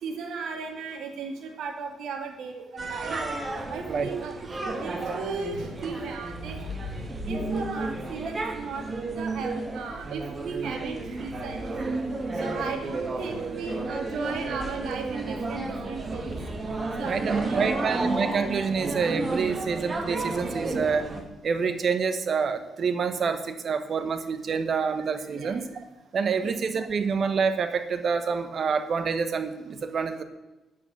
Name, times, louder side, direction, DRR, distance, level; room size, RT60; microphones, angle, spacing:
voice 1, 0.0-3.2 3.7-6.9 7.3-8.9 9.2-12.0 12.3-16.3 17.0-18.0 25.3-25.6 26.4-26.6, right 4 dB, 75° right, 4 dB, 2.3 m, -36 dB
sound 1, 2.8-21.2, right 3 dB, 30° right, 1.7 m, -32 dB
sound 2, 5.3-9.4 10.4-12.7 16.0-16.9 17.3-17.8, left 3 dB, 15° left, 3.4 m, -43 dB
voice 2, 17.0-21.1 21.4-25.7 26.1-30.2, right 5 dB, 50° right, 10 dB, 1.2 m, -27 dB
9.0 x 8.4 x 7.5 m, 1.1 s
cardioid pair, 90°, 0 cm